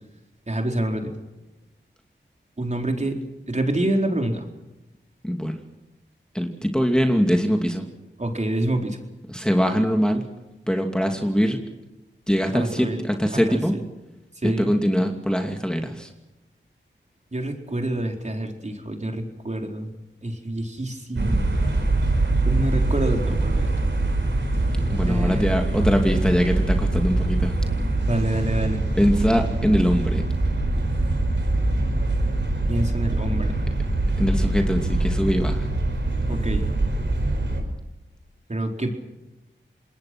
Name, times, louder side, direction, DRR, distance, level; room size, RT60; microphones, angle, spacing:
voice 1, 0.5-1.1 2.6-3.2 3.5-4.4 8.2-9.0 12.5-13.0 13.3-13.8 14.4-14.7 17.3-19.9 20.2-21.4 22.4-23.9 25.1-25.5 28.0-28.8 32.7-33.6 36.3-36.6 38.5-38.9, right 1 dB, 35° right, 3 dB, 4.3 m, -27 dB
voice 2, 5.2-5.6 6.3-7.9 9.3-10.2 10.7-11.6 12.3-13.8 14.4-16.1 24.9-27.5 29.0-30.3 34.2-35.7, equal, 5° left, 3 dB, 2.6 m, -22 dB
sound 1, 21.2-37.6, right 2 dB, 70° right, 5.5 m, -23 dB
27.0 x 20.5 x 6.2 m, 1.0 s
cardioid pair, 45°, 20 cm